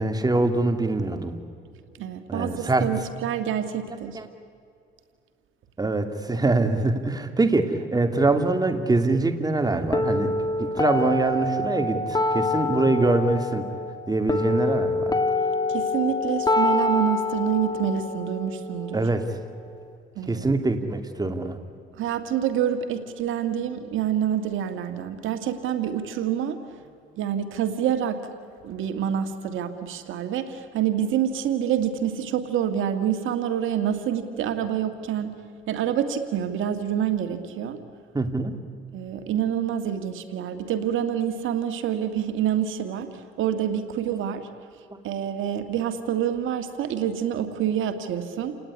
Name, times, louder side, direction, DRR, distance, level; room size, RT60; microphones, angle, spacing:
voice 1, 0.0-1.3 2.3-2.9 4.1-4.2 5.8-10.3 10.6-13.6 14.1-15.1 18.9-19.2 20.3-21.6 38.1-38.5, right 2 dB, 20° right, 7 dB, 2.4 m, -24 dB
voice 2, 2.0-4.2 15.7-19.0 20.2-20.5 22.0-26.6 27.1-28.2 28.6-35.3 35.7-37.8 38.9-44.5 45.0-48.6, right 9 dB, 85° right, 8 dB, 1.9 m, -27 dB
sound 1, 9.9-19.9, left 2 dB, 20° left, 2.0 m, -26 dB
29.5 x 18.5 x 9.7 m, 2.4 s
cardioid pair, 90°, 20 cm